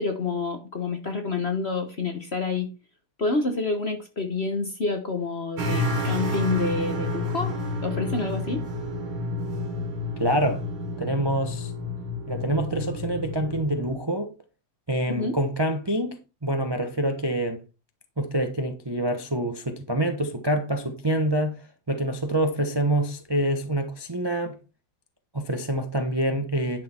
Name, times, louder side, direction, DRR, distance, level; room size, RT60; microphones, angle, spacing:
voice 1, 0.0-2.7 3.2-7.5 7.8-8.7 15.1-15.4, left 3 dB, 35° left, 1.1 m, -28 dB
sound 1, 5.6-13.9, left 1 dB, 70° right, 2.6 m, -30 dB
voice 2, 10.2-10.6 11.0-11.7 12.3-14.3 14.9-17.6 18.2-21.6 21.9-24.6 25.3-26.8, right 1 dB, 20° right, 0.7 m, -26 dB
10.5 x 6.5 x 4.4 m
omnidirectional pair, 2.4 m